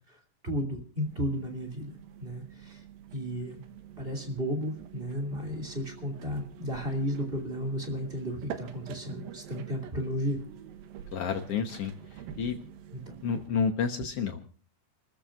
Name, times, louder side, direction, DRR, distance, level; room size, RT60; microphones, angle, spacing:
voice 1, 0.4-1.9 2.2-2.8 3.1-3.6 4.0-10.4 12.9-13.0, equal, 20° right, 3 dB, 2.3 m, -33 dB
sound 1, 1.0-13.5, right 9 dB, 75° right, 2.8 m, -46 dB
voice 2, 11.1-12.6 13.2-14.6, left 6 dB, 85° left, 6 dB, 1.3 m, -30 dB
30.0 x 14.0 x 2.5 m, 0.38 s
omnidirectional pair, 4.4 m